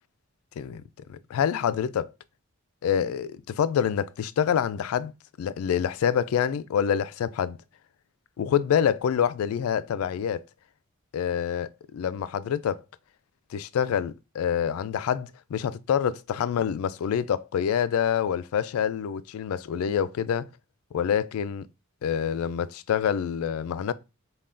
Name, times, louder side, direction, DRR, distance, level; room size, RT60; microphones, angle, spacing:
voice 1, 1.1-2.1 2.8-5.1 5.4-7.6 8.4-10.4 11.1-12.8 13.5-20.5 20.9-21.7 22.0-23.9, left 8 dB, 75° left, 0.3 m, -26 dB
5.4 x 2.3 x 2.5 m
head